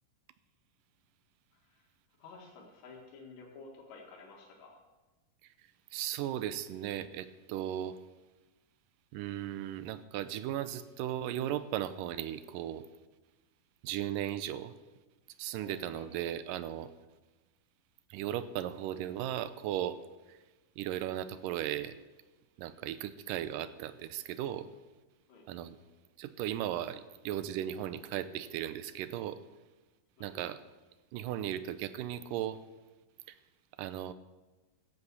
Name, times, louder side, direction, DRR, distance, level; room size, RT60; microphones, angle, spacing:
voice 1, 2.2-4.8 15.6-16.1 25.3-25.5 30.2-30.3, left 3 dB, 60° left, -2 dB, 3.0 m, -52 dB
voice 2, 5.9-8.0 9.1-12.8 13.8-14.7 15.4-16.9 18.1-20.0 20.3-20.4 20.8-22.0 22.6-24.7 25.5-25.8 26.2-29.4 30.2-30.6 31.1-32.6 33.3-33.4 33.8-34.1, right 11 dB, 85° right, 13 dB, 2.3 m, -36 dB
15.0 x 8.2 x 6.8 m, 1.2 s
omnidirectional pair, 3.9 m